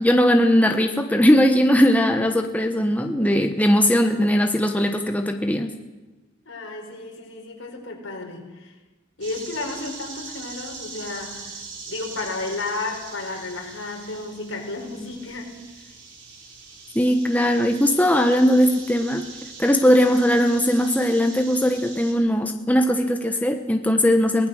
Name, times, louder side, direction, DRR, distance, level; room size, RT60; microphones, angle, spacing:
voice 1, 0.0-5.7 16.9-19.2 19.6-24.5, equal, 10° left, 4 dB, 1.1 m, -19 dB
voice 2, 6.5-8.7 9.2-11.5 11.9-15.5, left 3 dB, 80° left, 1 dB, 4.9 m, -32 dB
sound 1, 9.2-22.1, right 4 dB, 65° right, 4.3 m, -41 dB
23.0 x 18.5 x 6.4 m, 1.2 s
head